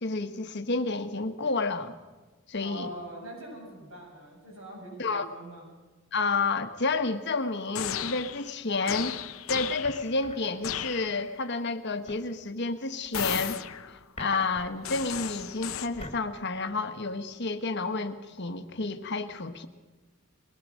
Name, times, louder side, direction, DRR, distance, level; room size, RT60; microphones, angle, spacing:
voice 1, 0.0-1.9 2.5-2.9 5.0-5.3 6.1-9.2 9.5-13.6 14.2-19.7, left 3 dB, 55° left, 8 dB, 1.3 m, -30 dB
voice 2, 2.6-5.7, right 1 dB, 85° right, -1 dB, 8.0 m, -43 dB
sound 1, 7.7-8.6 8.9-10.2 10.6-11.4 13.1-14.0 14.8-15.9, left 10 dB, 90° left, 0.8 m, -35 dB
sound 2, 9.8-10.9 12.1-13.5 13.8-17.3, left 2 dB, 30° left, 2.3 m, -46 dB
22.0 x 19.5 x 6.4 m, 1.3 s
head